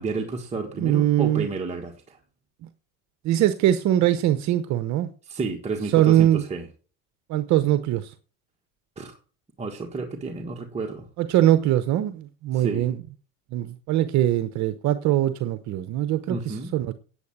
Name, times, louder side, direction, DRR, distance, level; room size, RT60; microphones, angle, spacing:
voice 1, 0.0-2.2 5.3-6.7 9.0-9.2 9.6-11.1 12.5-12.9 16.3-16.7, right 3 dB, 15° right, 1.5 m, -31 dB
voice 2, 0.8-1.5 2.6-2.7 3.2-5.1 5.9-6.4 7.3-8.1 11.2-13.0 13.5-16.9, right 13 dB, 50° right, 0.9 m, -22 dB
8.9 x 8.2 x 7.2 m
supercardioid pair, 120°, 37 cm